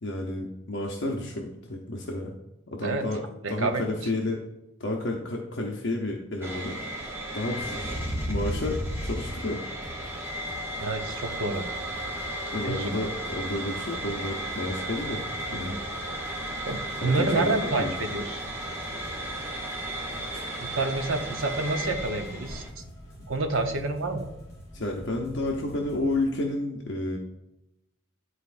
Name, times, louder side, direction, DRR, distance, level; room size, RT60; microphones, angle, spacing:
voice 1, 0.0-2.3 2.7-4.4 4.8-6.8 7.3-8.0 8.3-9.6 12.5-15.2 15.5-15.7 17.0-17.9 20.3-20.5 24.7-27.2, left 2 dB, 55° left, 0 dB, 0.7 m, -31 dB
voice 2, 3.4-3.8 10.8-11.6 12.6-13.0 15.6-15.8 16.7-18.4 20.6-22.8 23.3-24.3, right 3 dB, 80° right, 6 dB, 0.8 m, -28 dB
sound 1, 6.4-22.7, right 1 dB, 10° right, 0.8 m, -34 dB
sound 2, 9.7-26.3, left 1 dB, 15° left, 2.1 m, -46 dB
11.0 x 4.1 x 2.5 m, 0.91 s
head